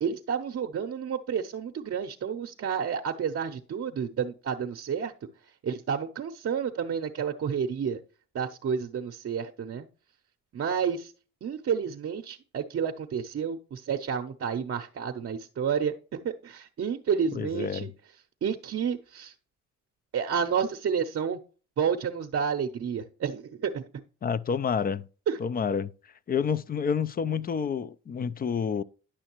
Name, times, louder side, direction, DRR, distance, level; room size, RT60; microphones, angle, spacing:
voice 1, 0.0-5.1 5.6-8.0 8.3-9.9 10.5-11.1 11.4-17.9 18.4-19.3 20.1-21.4 21.8-23.8 25.3-25.4, right 7 dB, 50° right, 0.7 m, -30 dB
voice 2, 17.3-17.9 24.2-25.1 25.4-25.9 26.3-28.8, left 6 dB, 30° left, 0.4 m, -29 dB
10.0 x 6.3 x 3.0 m
cardioid pair, 90°, 30 cm